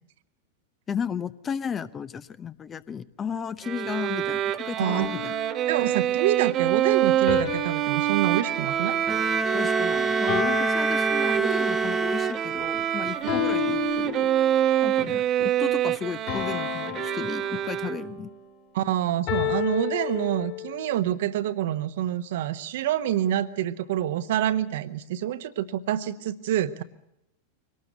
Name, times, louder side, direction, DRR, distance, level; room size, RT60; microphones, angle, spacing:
voice 1, 0.9-5.3 9.5-14.5 14.8-18.3, left 7 dB, 20° left, 16 dB, 0.8 m, -34 dB
Bowed string instrument, 3.6-18.3, right 11 dB, 30° right, 1.0 m, -26 dB
voice 2, 4.8-5.1 5.7-9.0 13.2-13.4 15.0-15.1 18.7-26.8, right 12 dB, 55° right, 12 dB, 1.1 m, -27 dB
sound 1, 4.9-6.1 7.3-9.7 10.3-11.8 13.3-14.7 16.3-18.1 19.3-20.9, left 13 dB, 45° left, 4.6 m, -33 dB
Bowed string instrument 2, 9.1-12.8, right 2 dB, 10° right, 1.0 m, -27 dB
24.0 x 19.0 x 8.1 m, 0.82 s
figure-of-eight pair, 90°, 0 cm